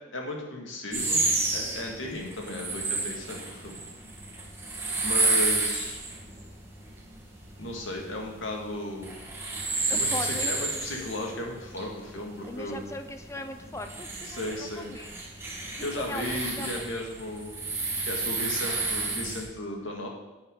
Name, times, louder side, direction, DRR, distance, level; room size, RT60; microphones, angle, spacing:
voice 1, 0.1-3.8 5.0-6.0 7.6-9.1 9.9-12.8 14.2-14.9 15.8-17.6 18.0-20.1, left 1 dB, 80° left, 0 dB, 2.0 m, -35 dB
sound 1, 0.9-19.4, right 3 dB, 10° right, 1.5 m, -31 dB
voice 2, 9.9-10.9 12.5-15.1 15.8-16.8, left 1 dB, 15° left, 7 dB, 0.6 m, -39 dB
10.0 x 8.5 x 3.9 m, 1.1 s
head